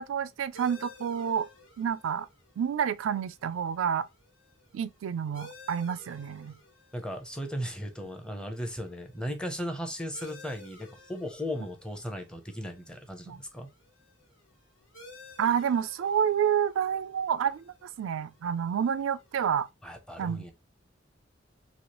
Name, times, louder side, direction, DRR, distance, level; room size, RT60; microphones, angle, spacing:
voice 1, 0.0-1.5 1.8-2.3 2.6-4.1 4.7-6.6 13.3-13.4 15.4-19.7 20.2-20.4, right 8 dB, 85° right, 0.3 m, -29 dB
sound 1, 0.5-19.7, left 2 dB, 85° left, 1.6 m, -55 dB
voice 2, 6.9-13.7 19.8-20.5, equal, 5° left, 0.6 m, -36 dB
3.0 x 2.8 x 2.9 m
head